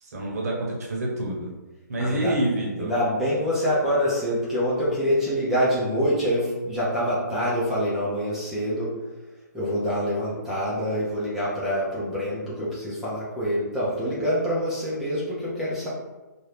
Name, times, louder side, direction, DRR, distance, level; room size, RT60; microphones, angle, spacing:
voice 1, 0.0-1.5 1.9-2.9, right 1 dB, 55° right, -2 dB, 0.9 m, -27 dB
voice 2, 2.0-2.3 2.8-8.9 9.5-15.9, equal, 5° right, -10 dB, 0.6 m, -25 dB
2.6 x 2.3 x 3.3 m, 1.1 s
hypercardioid pair, 150°, 10 cm